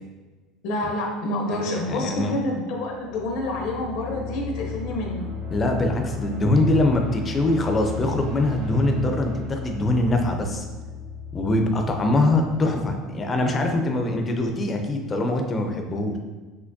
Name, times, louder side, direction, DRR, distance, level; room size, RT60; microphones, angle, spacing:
voice 1, 0.6-5.3, left 1 dB, 60° left, 1 dB, 0.7 m, -28 dB
voice 2, 1.5-2.3 5.5-10.7 11.3-16.2, left 2 dB, 20° left, 4 dB, 0.4 m, -23 dB
sound 1, 2.8-13.5, left 4 dB, 65° right, 1.0 m, -35 dB
5.7 x 2.9 x 2.6 m, 1.3 s
cardioid pair, 175°, 0 cm